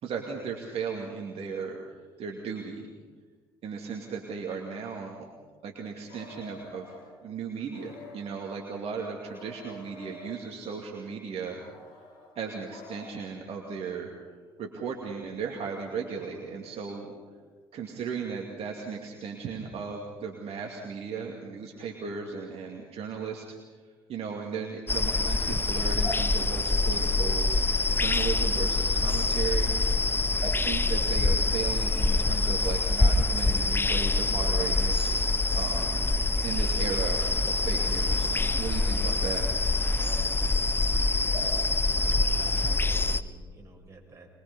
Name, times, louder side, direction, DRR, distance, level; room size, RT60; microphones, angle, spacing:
voice 1, 0.0-1.8 2.2-2.9 3.6-5.3 5.6-6.9 7.2-11.6 12.4-14.1 14.6-17.1 17.7-23.4 24.1-27.5 28.0-29.7 30.4-35.1 35.5-36.0 36.4-39.4, right 6 dB, 55° right, 0 dB, 2.5 m, -36 dB
sound 1, 6.1-7.1 7.7-8.6 9.2-10.5 11.6-13.1, left 2 dB, 70° left, 6.0 m, -48 dB
sound 2, 24.9-43.2, left 3 dB, 15° left, 1.0 m, -25 dB
voice 2, 42.3-44.3, right 3 dB, 25° right, 0 dB, 6.6 m, -50 dB
23.0 x 22.0 x 5.5 m, 1.5 s
hypercardioid pair, 55°, 13 cm